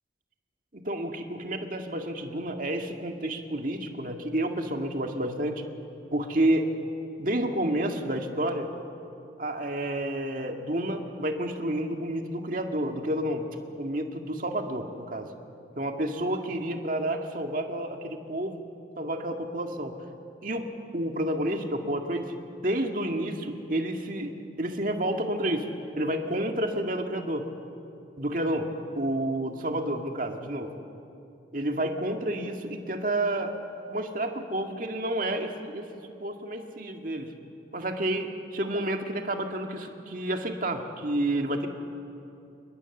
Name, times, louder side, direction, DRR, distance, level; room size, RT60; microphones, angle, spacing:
voice 1, 0.7-5.6 6.1-6.7 7.2-8.7 9.4-13.5 13.8-15.3 15.8-18.6 19.0-20.0 20.4-20.7 20.9-22.3 22.6-25.7 26.0-27.5 28.2-28.7 29.0-30.7 31.5-33.5 33.9-37.3 37.7-41.7, right 1 dB, 45° right, 4 dB, 2.0 m, -30 dB
29.0 x 21.0 x 7.2 m, 2.7 s
head